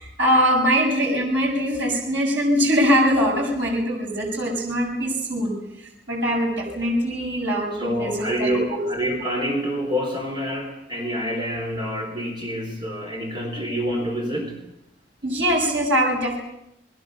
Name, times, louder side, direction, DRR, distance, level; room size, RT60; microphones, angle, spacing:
voice 1, 0.0-8.9 15.2-16.4, equal, 80° right, -1 dB, 7.2 m, -22 dB
voice 2, 7.7-14.6, equal, 25° right, 2 dB, 4.0 m, -27 dB
29.0 x 21.0 x 6.7 m, 0.82 s
head